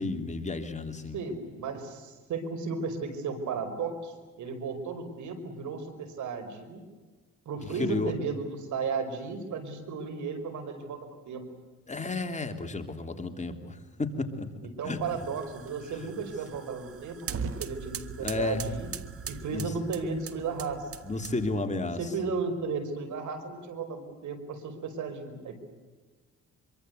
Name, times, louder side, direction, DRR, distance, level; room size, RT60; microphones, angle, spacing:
voice 1, 0.0-1.2 7.6-8.1 11.9-15.0 18.2-18.7 19.5-19.7 21.0-22.0, left 3 dB, 25° left, 6 dB, 3.1 m, -32 dB
voice 2, 1.1-6.8 7.5-11.4 14.6-18.9 19.3-20.9 22.0-25.6, right 4 dB, 75° right, 9 dB, 5.2 m, -34 dB
sound 1, 15.0-21.7, right 6 dB, 50° right, 1.5 m, -41 dB
25.5 x 24.0 x 8.2 m, 1.3 s
cardioid pair, 90°, 30 cm